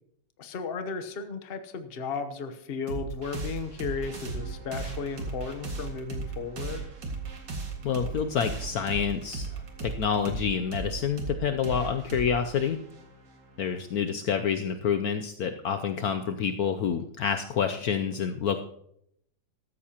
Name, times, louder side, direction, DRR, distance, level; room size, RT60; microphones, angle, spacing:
voice 1, 0.4-6.9, left 5 dB, 40° left, 8 dB, 1.0 m, -35 dB
sound 1, 2.9-14.0, right 4 dB, 80° right, 2.6 m, -37 dB
voice 2, 7.8-12.8 13.6-18.6, left 7 dB, 70° left, 7 dB, 1.0 m, -28 dB
14.5 x 13.0 x 2.9 m, 0.72 s
omnidirectional pair, 1.9 m